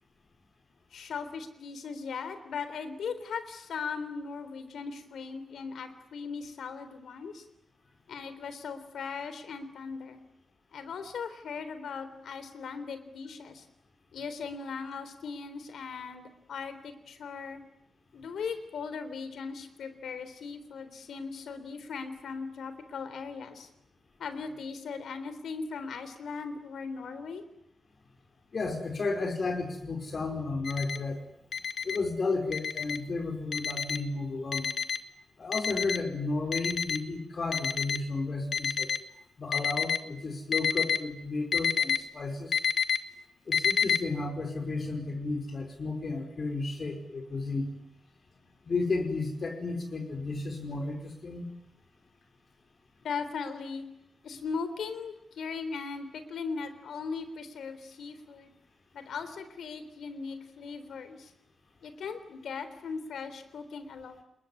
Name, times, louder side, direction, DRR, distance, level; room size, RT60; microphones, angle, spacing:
voice 1, 0.9-7.4 8.1-10.2 10.7-13.7 14.1-17.6 18.1-23.7 24.2-27.4 53.0-53.9 54.2-58.5 58.9-61.3 61.8-64.2, left 5 dB, 85° left, 11 dB, 3.7 m, -38 dB
voice 2, 28.5-31.2 31.8-34.7 35.4-38.9 39.4-42.6 43.5-47.8 48.6-51.5, left 3 dB, 40° left, 3 dB, 4.9 m, -33 dB
Alarm, 30.6-31.0 31.5-32.0 32.5-33.0 33.5-34.0 34.5-35.0 35.5-36.0 36.5-37.0 37.5-38.0 38.5-39.0 39.5-40.0 40.5-41.0 41.5-42.0 42.5-43.0 43.5-44.0, left 7 dB, 60° left, 1.5 m, -28 dB
28.5 x 21.5 x 9.9 m, 0.78 s
wide cardioid pair, 140°, 0 cm